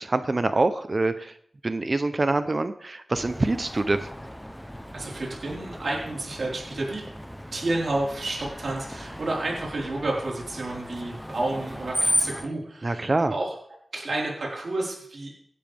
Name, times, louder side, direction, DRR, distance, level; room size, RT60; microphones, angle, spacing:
voice 1, 0.0-1.4 1.6-4.1 12.8-13.3, right 2 dB, 40° right, 10 dB, 0.8 m, -25 dB
Screech, 3.2-12.5, equal, 5° left, 0.9 m, -34 dB
voice 2, 4.9-7.0 7.5-13.5 13.9-15.3, right 2 dB, 65° right, -3 dB, 4.7 m, -30 dB
17.5 x 12.5 x 3.6 m, 0.64 s
wide cardioid pair, 80°, 0 cm